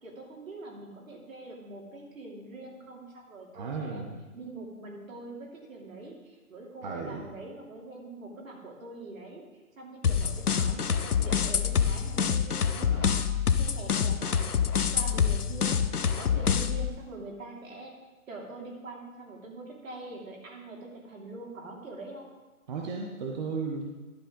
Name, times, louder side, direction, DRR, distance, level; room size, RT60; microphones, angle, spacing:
voice 1, 0.0-4.0 4.3-9.4 9.8-14.5 14.9-15.8 16.2-17.9 18.3-22.3, right 2 dB, 65° right, -1 dB, 3.0 m, -44 dB
voice 2, 3.5-4.2 6.8-7.3 12.8-13.2 16.2-16.3 22.7-23.9, right 4 dB, 30° right, 0 dB, 0.9 m, -35 dB
sound 1, 10.0-16.9, left 7 dB, 90° left, 0.7 m, -26 dB
12.0 x 7.9 x 3.8 m, 1.2 s
figure-of-eight pair, 135°, 44 cm